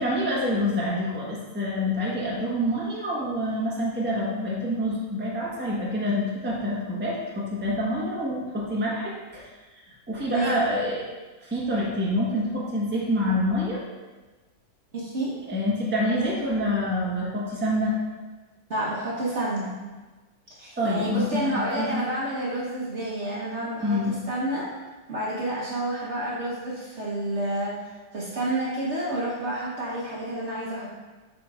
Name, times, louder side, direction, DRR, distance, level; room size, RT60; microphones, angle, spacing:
voice 1, 0.0-11.0 11.4-13.8 15.5-17.9 20.8-22.0 23.8-24.1, left 1 dB, 10° right, -5 dB, 1.0 m, -27 dB
voice 2, 10.2-10.6 14.9-15.4 18.7-19.8 20.6-24.7 25.1-27.8 28.1-30.9, right 1 dB, 45° right, -6 dB, 1.2 m, -29 dB
7.8 x 5.2 x 2.4 m, 1.2 s
omnidirectional pair, 1.9 m